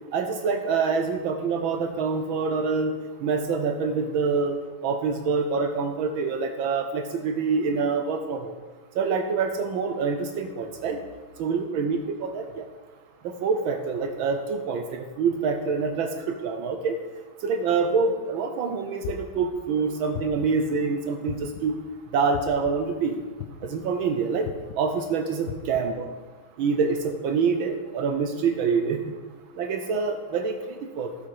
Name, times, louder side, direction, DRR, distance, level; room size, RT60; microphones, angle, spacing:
voice 1, 0.1-3.0 3.2-4.6 4.8-8.5 9.0-11.0 11.4-12.6 13.2-17.0 17.4-21.8 22.1-23.2 23.6-24.5 24.8-26.1 26.6-29.0 29.6-31.1, right 5 dB, 75° right, 6 dB, 1.4 m, -26 dB
sound 1, 19.0-19.5 20.1-20.6 21.3-21.7 22.3-22.7 23.4-23.8 24.4-24.8 25.5-25.8, left 11 dB, 70° left, 1.2 m, -36 dB
12.0 x 6.0 x 4.7 m, 1.3 s
omnidirectional pair, 2.3 m